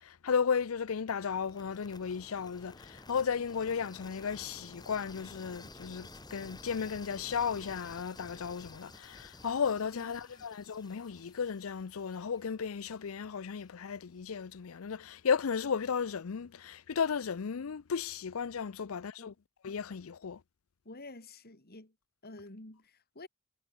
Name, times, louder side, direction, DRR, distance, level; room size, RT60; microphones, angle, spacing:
voice 1, 0.0-19.3 19.6-20.4, left 6 dB, 70° left, 0.5 m, -34 dB
sound 1, 1.2-13.1, left 2 dB, 20° left, 2.1 m, -52 dB
voice 2, 9.9-10.5 19.2-19.4 20.9-22.0 22.2-23.3, left 2 dB, 45° left, 3.3 m, -50 dB
head